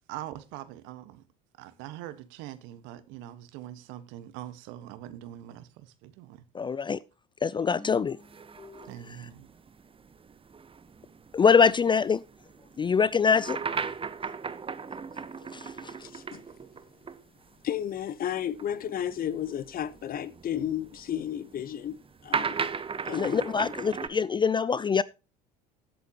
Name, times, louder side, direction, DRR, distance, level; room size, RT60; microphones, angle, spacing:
voice 1, 0.1-1.2 1.6-6.4 8.9-9.5, right 13 dB, 65° right, 1.4 m, -43 dB
voice 2, 6.5-7.0 7.4-8.2 8.6-8.8 11.3-12.2 12.8-13.6 15.5-15.9 23.2-25.0, left 6 dB, 20° left, 0.4 m, -24 dB
sound 1, 7.6-9.3, equal, 5° left, 4.1 m, -51 dB
sound 2, 8.2-17.2 17.5-17.6 18.5-24.1, right 5 dB, 25° right, 1.1 m, -37 dB
voice 3, 16.0-16.4 17.6-22.0 22.2-22.5 23.0-23.7, left 10 dB, 45° left, 1.0 m, -33 dB
17.0 x 8.3 x 2.9 m
hypercardioid pair, 65°, 21 cm